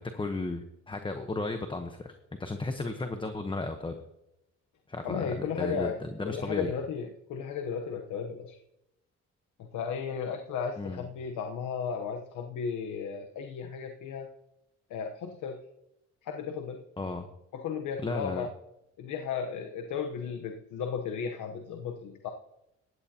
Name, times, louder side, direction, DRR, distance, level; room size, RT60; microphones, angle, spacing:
voice 1, 0.0-2.1 2.4-3.9 4.9-6.7 10.8-11.1 17.0-17.3 18.0-18.5, left 2 dB, 15° left, 7 dB, 1.0 m, -34 dB
voice 2, 5.0-8.6 9.6-14.3 14.9-15.6 16.2-16.8 17.5-18.5 19.0-22.3, left 6 dB, 80° left, 4 dB, 1.0 m, -35 dB
16.0 x 11.0 x 2.9 m, 0.86 s
cardioid pair, 90°, 30 cm